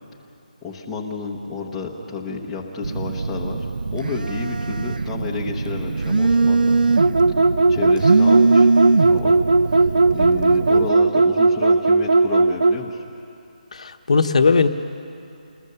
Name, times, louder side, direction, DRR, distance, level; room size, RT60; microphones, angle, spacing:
voice 1, 0.6-3.7 3.9-6.7 7.7-8.7 9.0-13.0, left 4 dB, 5° left, -4 dB, 0.9 m, -31 dB
Telephone, 2.8-10.9, right 3 dB, 80° right, 0.6 m, -21 dB
sound 1, 7.0-12.8, right 3 dB, 60° right, 1.0 m, -16 dB
voice 2, 13.7-14.7, left 4 dB, 50° left, 8 dB, 1.0 m, -18 dB
28.0 x 20.5 x 6.9 m, 2.7 s
hypercardioid pair, 180°, 5 cm